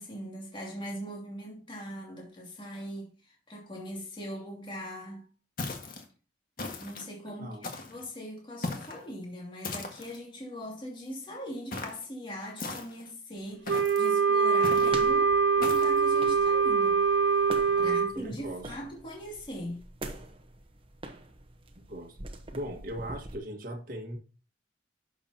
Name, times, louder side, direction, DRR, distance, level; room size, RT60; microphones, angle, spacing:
voice 1, 0.0-5.3 6.8-7.6 7.9-17.3 17.8-19.9, equal, 30° left, 2.7 m, -41 dB
sound 1, 5.6-6.0 6.6-7.1 7.6-8.0 8.6-9.0 9.6-10.2 11.7-12.0 12.6-13.1 13.7-14.1 14.6-15.0 15.6-16.0, left 3 dB, 50° left, 1.8 m, -37 dB
Wind instrument woodwind instrument, 13.7-18.1, right 5 dB, 80° right, 0.8 m, -24 dB
sound 2, 14.8-23.4, right 2 dB, 30° right, 1.0 m, -45 dB
voice 2, 17.7-18.7 21.9-22.2 22.5-24.2, equal, 50° right, 1.8 m, -39 dB
11.0 x 6.9 x 2.9 m
head